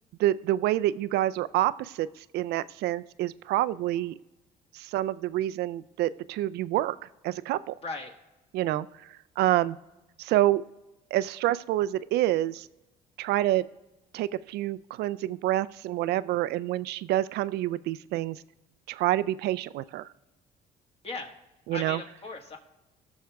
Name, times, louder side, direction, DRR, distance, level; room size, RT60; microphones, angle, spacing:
voice 1, 0.2-4.2 4.7-7.0 7.2-7.7 8.5-9.8 10.2-10.6 11.1-12.7 13.2-13.6 14.1-18.4 18.9-20.1 21.7-22.0, right 14 dB, 75° right, 17 dB, 0.4 m, -27 dB
voice 2, 7.8-8.1 21.0-21.3 21.7-22.6, left 3 dB, 35° left, 3 dB, 1.8 m, -37 dB
18.5 x 6.4 x 3.5 m, 1.0 s
cardioid pair, 110°, 17 cm